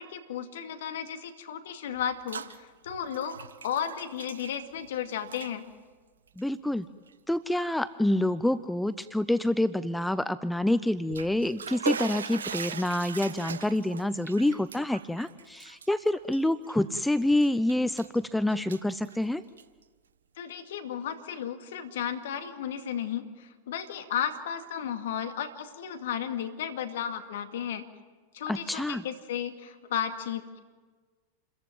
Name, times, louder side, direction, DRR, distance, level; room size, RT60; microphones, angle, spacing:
voice 1, 0.0-5.7 20.4-27.9 28.3-30.6, left 8 dB, 60° left, 8 dB, 2.2 m, -34 dB
Bathtub (filling or washing), 2.0-2.6 2.9-5.0 5.2-5.5 6.3-6.4 7.1-7.2 7.6-7.7 10.9-17.0 17.4-18.2 18.5-19.8, right 7 dB, 70° right, 1.0 m, -39 dB
voice 2, 6.4-6.9 7.3-19.4 28.5-29.0, left 1 dB, 5° left, 16 dB, 0.6 m, -27 dB
28.5 x 14.5 x 9.2 m, 1.4 s
figure-of-eight pair, 90°, 0 cm